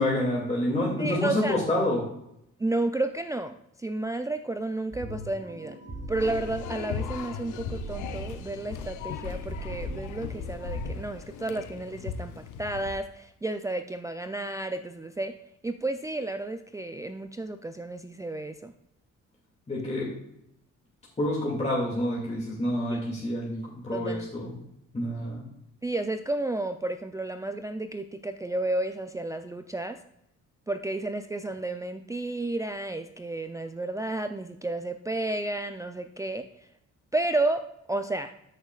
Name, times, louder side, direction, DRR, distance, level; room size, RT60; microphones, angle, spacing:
voice 1, 0.0-2.0 19.7-20.1 21.2-24.6 24.9-25.4, left 1 dB, 20° left, -4 dB, 2.4 m, -28 dB
voice 2, 1.0-1.6 2.6-5.8 6.1-15.3 15.6-18.7 22.9-23.0 23.9-24.3 25.8-30.0 30.7-36.4 37.1-37.6 37.9-38.3, right 2 dB, 10° right, 6 dB, 0.4 m, -32 dB
sound 1, 4.9-11.0, right 2 dB, 40° right, 2.6 m, -41 dB
sound 2, 6.2-13.0, left 7 dB, 85° left, 0.8 m, -37 dB
13.0 x 6.4 x 2.4 m, 0.78 s
cardioid pair, 90°, 30 cm